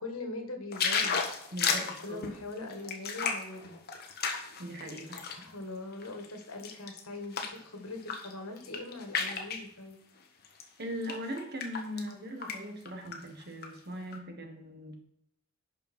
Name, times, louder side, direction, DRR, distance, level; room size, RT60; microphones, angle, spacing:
voice 1, 0.0-1.4 1.7-3.8 5.2-10.0, left 2 dB, 70° left, 5 dB, 1.9 m, -42 dB
sound 1, 0.7-5.5 5.9-7.6 8.0-8.3 8.6-9.7 10.4-10.6 11.0-12.1 12.4-12.6 12.9-13.7 14.1-14.2, left 5 dB, 45° left, 1.3 m, -33 dB
voice 2, 1.5-2.2 4.6-5.4 10.8-15.0, equal, 45° right, 4 dB, 1.6 m, -40 dB
11.0 x 5.4 x 4.5 m, 0.71 s
head